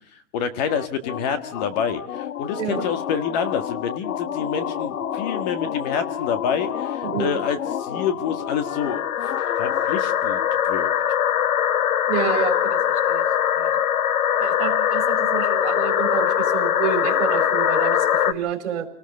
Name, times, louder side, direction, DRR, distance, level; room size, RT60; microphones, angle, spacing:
voice 1, 0.3-9.3 9.6-10.9, left 7 dB, 30° left, 9 dB, 1.7 m, -27 dB
sound 1, 0.7-18.3, left 9 dB, 80° left, 1.3 m, -24 dB
voice 2, 7.0-7.3 12.1-13.3 13.5-13.8 14.4-18.9, right 7 dB, 55° right, 7 dB, 4.8 m, -28 dB
29.0 x 19.0 x 5.4 m, 0.63 s
hypercardioid pair, 160°, 42 cm